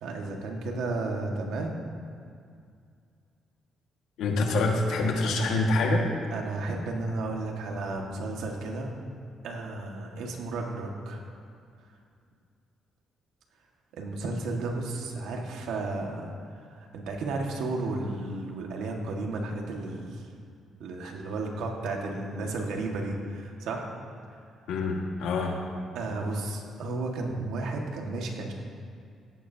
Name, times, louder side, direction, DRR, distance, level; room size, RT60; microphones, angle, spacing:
voice 1, 0.0-1.8 6.3-8.9 9.4-11.3 13.9-20.2 20.8-23.9 26.0-28.5, right 2 dB, 85° right, 1 dB, 1.8 m, -33 dB
voice 2, 4.2-6.1 24.7-25.6, left 2 dB, 85° left, 0 dB, 1.8 m, -26 dB
16.5 x 12.5 x 2.9 m, 2.3 s
cardioid pair, 90°, 0 cm